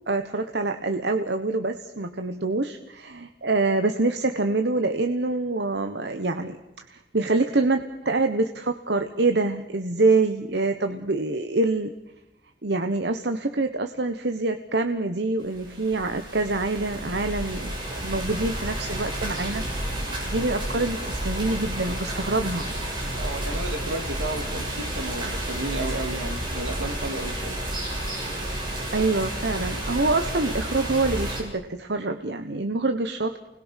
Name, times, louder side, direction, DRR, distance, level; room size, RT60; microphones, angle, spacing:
voice 1, 0.1-6.6 6.9-11.9 12.6-19.6 20.2-22.7 28.9-33.4, right 3 dB, 60° right, 7 dB, 1.3 m, -25 dB
sound 1, 15.4-31.4, right 1 dB, 25° right, 8.0 m, -31 dB
voice 2, 23.1-27.6, right 2 dB, 75° right, 6 dB, 2.9 m, -33 dB
29.0 x 21.0 x 6.5 m, 0.92 s
head